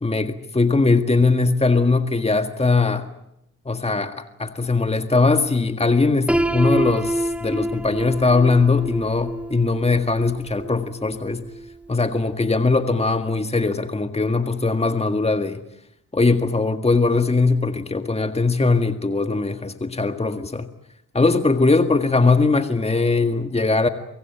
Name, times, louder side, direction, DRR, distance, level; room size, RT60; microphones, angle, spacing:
voice 1, 0.0-3.1 3.7-11.4 11.9-15.6 16.1-20.7 21.1-23.9, left 3 dB, 20° left, 8 dB, 1.8 m, -20 dB
Piano, 6.3-12.1, right 1 dB, 5° right, 1.4 m, -27 dB
24.0 x 22.5 x 9.2 m, 0.81 s
cardioid pair, 60°, 32 cm